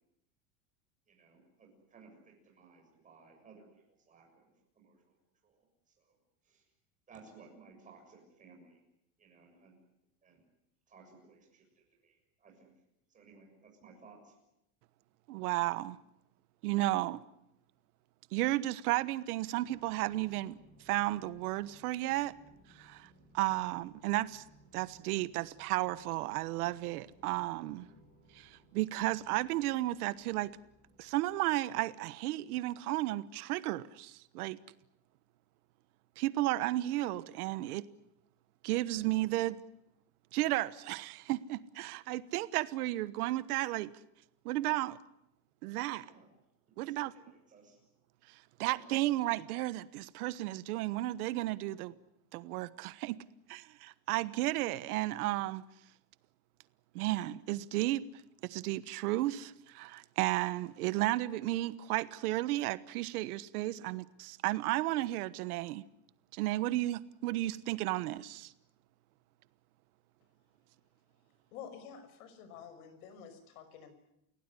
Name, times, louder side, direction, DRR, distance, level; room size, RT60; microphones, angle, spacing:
voice 1, 1.1-5.2 5.4-6.2 6.4-6.7 7.1-8.8 9.2-9.8 10.2-10.5 10.9-12.7 13.1-14.4 46.0-46.3 46.7-47.8 48.6-48.8, right 4 dB, 15° right, 7.0 m, -59 dB
voice 2, 15.3-16.0 16.6-17.2 18.3-20.6 20.8-22.3 22.7-24.4 24.7-27.9 28.3-30.5 31.0-34.6 36.2-37.8 38.6-39.6 40.3-43.9 44.4-45.0 45.6-46.1 46.8-47.1 48.3-51.9 52.3-53.2 53.5-55.6 56.9-58.0 58.4-65.8 66.3-68.5, right 17 dB, 90° right, 1.3 m, -33 dB
sound 1, 19.6-31.4, right 1 dB, 20° left, 6.8 m, -63 dB
voice 3, 71.5-73.9, left 7 dB, 80° left, 5.9 m, -49 dB
29.0 x 17.0 x 9.9 m
cardioid pair, 175°, 44 cm